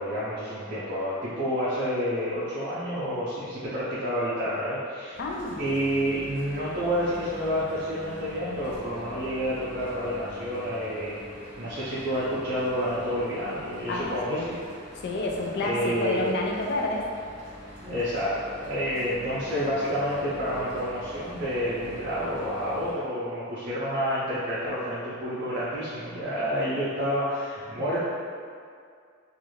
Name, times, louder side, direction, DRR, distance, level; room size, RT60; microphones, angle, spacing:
voice 1, 0.0-5.2 5.6-11.2 11.6-14.6 15.6-16.3 17.8-28.0, equal, 45° right, -10 dB, 0.5 m, -29 dB
Mechanical fan, 5.1-22.9, equal, 40° left, 1.1 m, -44 dB
voice 2, 5.2-5.6 13.9-14.5 15.0-17.1, left 2 dB, 55° left, 0 dB, 0.4 m, -29 dB
2.4 x 2.4 x 3.0 m, 2.2 s
head